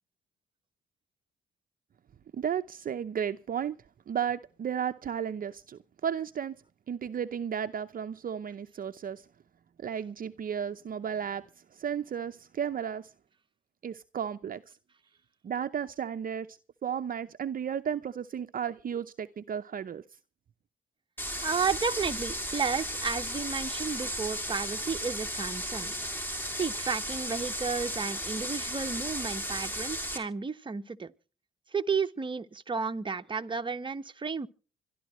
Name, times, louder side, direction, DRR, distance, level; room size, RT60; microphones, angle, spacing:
voice 1, 2.3-3.8 4.1-6.6 6.9-9.3 9.8-11.4 11.7-13.1 13.8-14.8 15.4-20.0, right 8 dB, 45° right, 0.7 m, -34 dB
sound 1, 21.2-30.2, equal, 10° left, 3.4 m, -35 dB
voice 2, 21.4-25.9 26.5-31.1 31.7-34.5, right 5 dB, 25° right, 1.1 m, -32 dB
25.5 x 12.0 x 3.1 m
cardioid pair, 90°, 20 cm